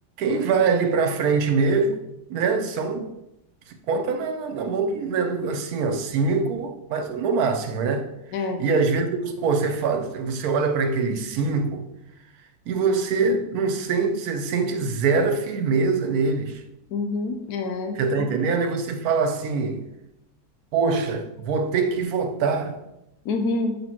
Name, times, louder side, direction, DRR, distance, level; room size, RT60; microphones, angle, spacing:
voice 1, 0.2-2.0 2.3-3.1 3.9-8.1 8.6-11.9 12.7-16.6 18.0-19.9 20.7-22.8, right 4 dB, 65° right, 1.2 m, -23 dB
voice 2, 8.3-8.6 16.9-18.3 23.2-23.8, left 3 dB, 70° left, 1.2 m, -27 dB
7.3 x 4.4 x 4.4 m
omnidirectional pair, 1.8 m